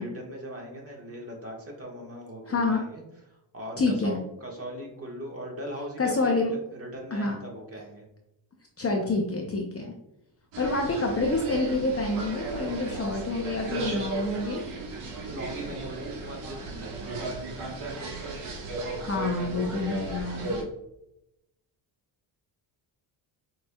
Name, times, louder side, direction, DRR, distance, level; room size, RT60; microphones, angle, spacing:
voice 1, 0.0-8.1 15.2-17.4, right 1 dB, 30° right, -1 dB, 1.5 m, -40 dB
voice 2, 2.5-2.8 3.8-4.2 6.0-6.5 7.1-7.4 8.8-9.9 10.6-14.6 18.7-20.6, left 3 dB, 30° left, 1 dB, 0.6 m, -27 dB
sound 1, 10.5-20.6, right 3 dB, 80° right, 1.5 m, -35 dB
6.2 x 3.2 x 2.2 m, 0.86 s
cardioid pair, 110°, 49 cm